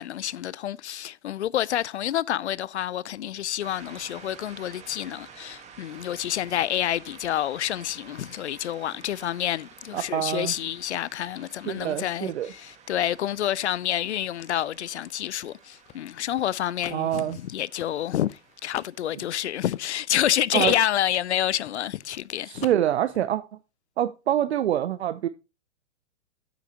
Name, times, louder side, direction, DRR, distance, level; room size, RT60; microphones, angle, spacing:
voice 1, 0.0-18.3 18.6-22.6, left 11 dB, 75° left, 0.5 m, -28 dB
sound 1, 3.6-19.2, right 6 dB, 20° right, 1.5 m, -51 dB
voice 2, 9.9-10.5 11.7-12.5 16.9-17.4 20.5-20.7 22.5-23.4 24.0-25.3, right 11 dB, 70° right, 0.7 m, -25 dB
sound 2, 15.0-20.3 20.6-22.3 22.5-23.2, left 12 dB, 20° left, 0.6 m, -44 dB
8.9 x 8.3 x 2.8 m
hypercardioid pair, 110°, 34 cm